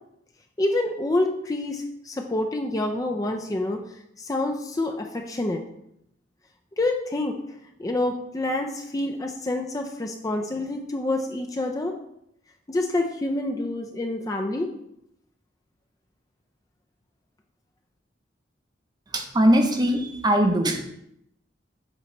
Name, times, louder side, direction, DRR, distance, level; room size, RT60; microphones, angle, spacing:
voice 1, 0.6-3.8 4.2-5.6 6.8-7.4 7.8-11.9 12.7-14.7, left 2 dB, 20° left, 3 dB, 0.4 m, -27 dB
voice 2, 19.1-20.9, right 1 dB, 20° right, 4 dB, 0.7 m, -21 dB
8.0 x 2.9 x 4.3 m, 0.77 s
head